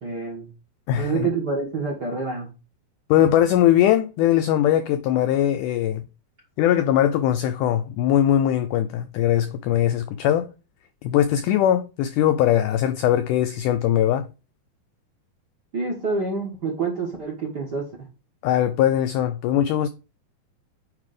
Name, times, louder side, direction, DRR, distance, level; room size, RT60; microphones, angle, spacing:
voice 1, 0.0-0.5 1.0-2.5 15.7-18.1, right 4 dB, 50° right, 1.2 m, -27 dB
voice 2, 0.9-1.3 3.1-6.0 6.6-10.5 11.0-14.3 18.4-19.9, left 11 dB, 90° left, 1.8 m, -20 dB
9.3 x 3.3 x 5.0 m
omnidirectional pair, 4.2 m